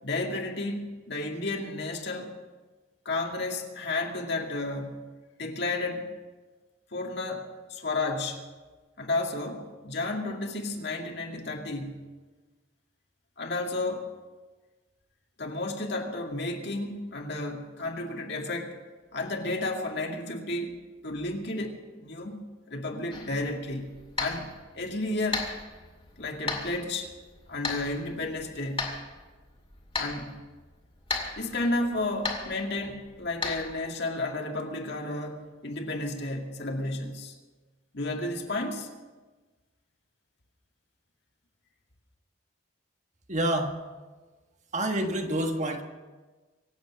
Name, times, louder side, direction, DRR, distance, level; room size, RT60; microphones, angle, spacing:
voice 1, 0.0-2.3 3.1-5.0 5.4-6.1 6.9-8.4 9.0-12.0 13.4-14.1 15.4-18.8 19.1-20.8 21.0-22.4 22.7-23.9 24.2-25.5 26.2-27.1 27.5-28.9 30.0-30.3 31.4-37.4 37.9-38.9, left 2 dB, 55° left, 1 dB, 2.2 m, -32 dB
sound 1, 23.1-33.8, left 4 dB, 25° left, 2.3 m, -37 dB
voice 2, 43.3-43.8 44.7-45.8, right 1 dB, 35° right, 4 dB, 1.4 m, -27 dB
25.0 x 8.3 x 6.2 m, 1.3 s
head